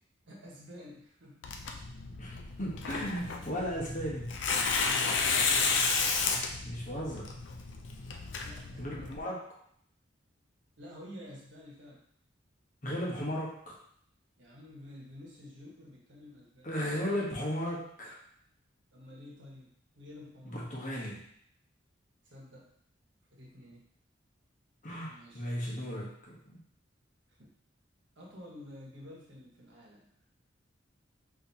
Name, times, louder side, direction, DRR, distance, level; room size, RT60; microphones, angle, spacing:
voice 1, 0.3-1.5 4.8-5.9 8.4-9.2 10.8-12.1 14.4-16.7 18.9-20.6 22.2-22.7 23.3-23.8 25.1-25.4 27.4-27.5 28.2-30.1, left 1 dB, 75° right, -4 dB, 1.1 m, -50 dB
Tearing, 1.4-9.2, left 4 dB, 80° left, 0.5 m, -32 dB
voice 2, 2.2-4.4 6.6-7.3 8.8-9.6 12.8-13.8 16.6-18.2 20.4-21.2 24.8-26.6, equal, 45° left, -4 dB, 1.0 m, -36 dB
4.4 x 2.7 x 2.7 m, 0.65 s
head